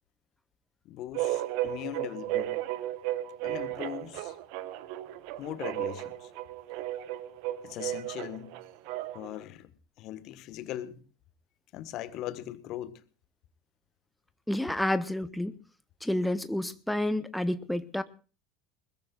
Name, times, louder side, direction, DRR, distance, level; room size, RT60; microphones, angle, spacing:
voice 1, 0.8-2.6 3.4-4.4 5.4-6.3 7.6-8.5 9.1-9.7 10.0-11.0 11.7-13.0, left 12 dB, 55° left, 1.3 m, -39 dB
sound 1, 1.1-9.4, right 14 dB, 60° right, 1.1 m, -34 dB
voice 2, 14.5-15.5 16.0-18.0, left 1 dB, 5° left, 0.9 m, -29 dB
21.0 x 21.0 x 2.4 m
hypercardioid pair, 75°, 0 cm